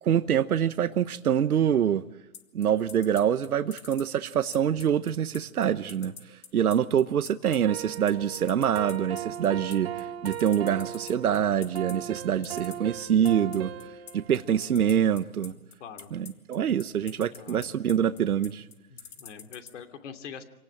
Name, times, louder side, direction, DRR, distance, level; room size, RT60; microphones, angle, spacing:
voice 1, 0.0-2.0 2.5-13.7 14.1-15.5 16.1-18.6, right 9 dB, 85° right, 1.1 m, -25 dB
sound 1, 2.3-19.7, left 6 dB, 75° left, 3.1 m, -45 dB
sound 2, 7.7-15.0, right 10 dB, 45° right, 1.7 m, -38 dB
voice 2, 15.8-16.1 17.3-17.6 18.9-20.4, left 7 dB, 55° left, 3.1 m, -43 dB
27.0 x 18.5 x 8.7 m
hypercardioid pair, 150°, 43 cm